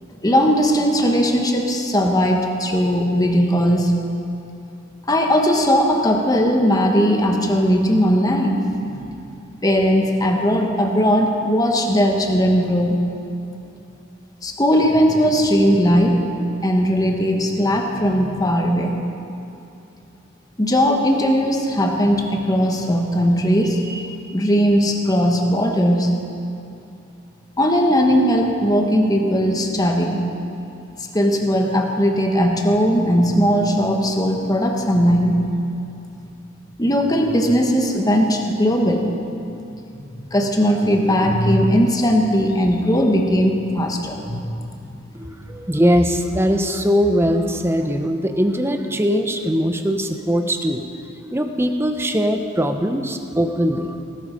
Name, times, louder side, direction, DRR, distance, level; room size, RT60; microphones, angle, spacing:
voice 1, 0.2-3.9 5.1-8.7 8.9-9.0 9.6-13.0 14.4-16.2 16.6-18.9 20.6-26.1 27.6-30.2 31.1-35.4 36.8-39.1 40.3-44.4 44.8-45.0, equal, 20° left, 2 dB, 1.3 m, -18 dB
voice 2, 45.1-50.8 51.3-54.0, equal, 10° right, 6 dB, 0.8 m, -20 dB
18.0 x 12.5 x 5.2 m, 2.8 s
head